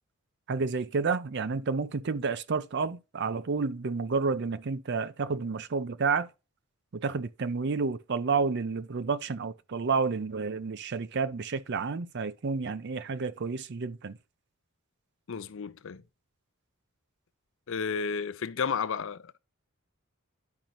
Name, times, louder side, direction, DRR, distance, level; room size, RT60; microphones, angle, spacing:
voice 1, 0.5-6.3 6.9-14.2, right 4 dB, 50° right, 0.5 m, -30 dB
voice 2, 15.3-16.0 17.7-19.4, left 6 dB, 60° left, 0.5 m, -32 dB
10.5 x 5.2 x 2.8 m
head